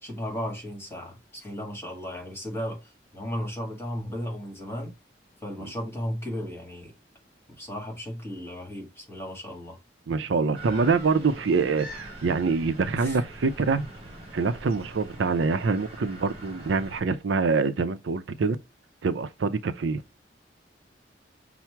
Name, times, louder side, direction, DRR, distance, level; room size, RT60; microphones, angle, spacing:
voice 1, 0.0-4.9 5.4-6.9 7.5-9.8 13.0-13.2, equal, 15° left, 1.6 m, -35 dB
voice 2, 10.1-13.9 14.3-18.6 19.0-20.0, right 4 dB, 85° right, 0.5 m, -25 dB
sound 1, 10.6-17.0, right 1 dB, 30° right, 1.4 m, -43 dB
5.7 x 2.0 x 4.5 m
head